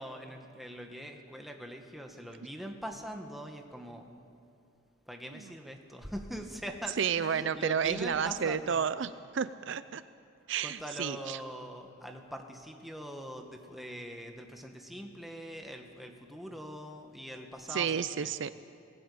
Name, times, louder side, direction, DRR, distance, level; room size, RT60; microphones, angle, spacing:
voice 1, 0.0-4.1 5.0-8.9 10.6-18.3, equal, ahead, 3 dB, 1.6 m, -42 dB
voice 2, 7.0-10.0 10.5-11.4 17.7-18.5, right 7 dB, 60° right, 14 dB, 0.5 m, -31 dB
21.0 x 16.5 x 8.6 m, 2.6 s
head